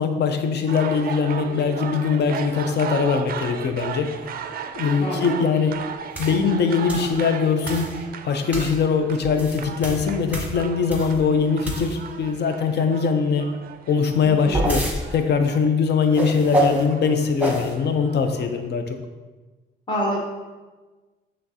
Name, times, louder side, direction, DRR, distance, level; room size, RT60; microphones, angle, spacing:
voice 1, 0.0-4.1 4.7-5.8 6.2-7.9 8.2-13.5 13.9-14.8 15.1-19.0, left 5 dB, 60° left, 6 dB, 0.6 m, -22 dB
sound 1, 0.7-18.7, right 7 dB, 50° right, 0.4 m, -36 dB
voice 2, 5.0-5.4 14.2-14.7 19.9-20.2, equal, 25° left, -3 dB, 1.3 m, -27 dB
sound 2, 6.1-6.4 6.9-7.1 7.6-8.0 8.5-8.8 9.2-11.2 11.6-12.1 14.1-15.0 16.1-16.8 17.4-17.7, right 1 dB, 5° right, 1.1 m, -26 dB
5.7 x 3.2 x 2.8 m, 1.3 s
cardioid pair, 90°, 20 cm